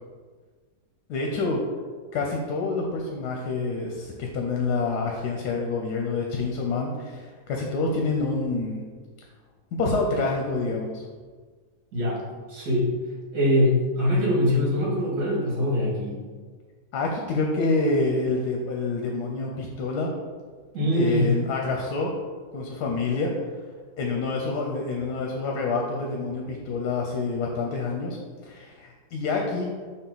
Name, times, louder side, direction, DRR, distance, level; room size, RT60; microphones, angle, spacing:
voice 1, 1.1-1.6 2.1-8.8 9.7-11.0 16.9-20.1 20.9-22.1 22.5-23.3 24.0-29.7, left 3 dB, 85° left, 1 dB, 1.3 m, -27 dB
voice 2, 11.9-12.2 12.5-12.9 13.3-16.2 20.7-21.3, left 1 dB, 75° right, -6 dB, 2.6 m, -23 dB
5.7 x 4.4 x 3.9 m, 1.5 s
omnidirectional pair, 1.7 m